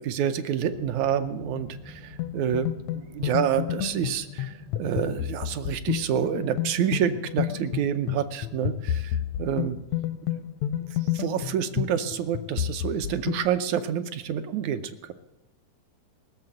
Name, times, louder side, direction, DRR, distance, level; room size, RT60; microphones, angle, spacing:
voice 1, 0.0-4.5 4.8-9.8 11.1-15.1, right 9 dB, 75° right, 10 dB, 1.9 m, -28 dB
sound 1, 0.6-12.7 13.7-13.8, left 3 dB, 10° right, 0.5 m, -49 dB
sound 2, 2.2-13.4, left 12 dB, 80° left, 1.6 m, -30 dB
17.5 x 7.0 x 8.8 m, 1.0 s
omnidirectional pair, 3.6 m